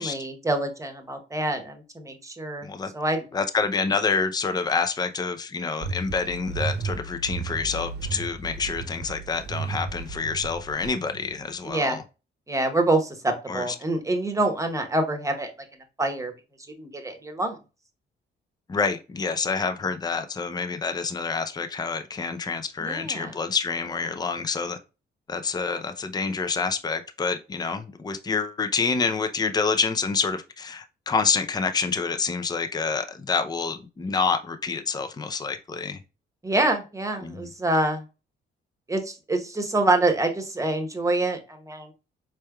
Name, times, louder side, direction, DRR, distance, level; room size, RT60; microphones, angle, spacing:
voice 1, 0.0-2.7 2.9-3.3 11.6-12.0 12.5-15.5 16.0-16.3 16.8-17.6 22.8-23.3 36.4-38.0 38.9-41.9, right 2 dB, 15° right, 0.9 m, -26 dB
voice 2, 2.6-2.9 3.3-12.0 13.5-13.7 18.7-24.8 25.3-36.0 37.2-37.5, left 5 dB, 20° left, 0.5 m, -27 dB
sound 1, 5.8-11.7, right 4 dB, 55° right, 0.8 m, -34 dB
4.3 x 3.3 x 2.3 m
cardioid pair, 90°, 20 cm